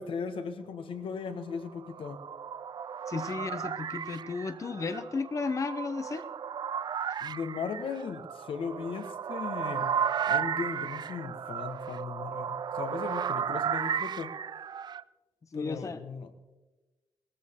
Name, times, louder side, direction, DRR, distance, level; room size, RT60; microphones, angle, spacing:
voice 1, 0.0-2.2 7.2-9.9 10.3-14.3 15.5-16.3, left 5 dB, 90° left, 9 dB, 1.3 m, -37 dB
sound 1, 1.6-15.0, right 8 dB, 55° right, 0.4 m, -34 dB
voice 2, 3.1-6.3 15.5-16.0, left 4 dB, 35° left, 10 dB, 0.8 m, -34 dB
19.5 x 14.0 x 3.6 m, 1.2 s
wide cardioid pair, 135°, 9 cm